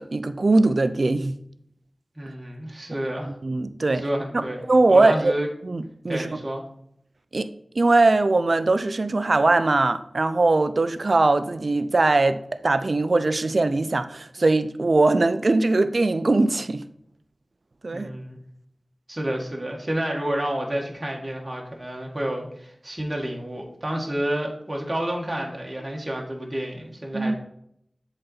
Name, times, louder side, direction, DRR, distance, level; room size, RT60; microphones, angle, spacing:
voice 1, 0.0-1.4 3.4-4.0 4.3-5.3 5.6-6.4 7.3-7.5 7.8-16.8 17.8-18.1 27.1-27.4, right 2 dB, 65° right, 11 dB, 0.5 m, -21 dB
voice 2, 2.2-3.3 3.9-4.6 4.9-5.5 6.1-6.6 17.9-18.4 19.1-27.4, right 1 dB, 30° right, -1 dB, 1.6 m, -29 dB
7.6 x 4.1 x 4.1 m, 0.71 s
wide cardioid pair, 45°, 0 cm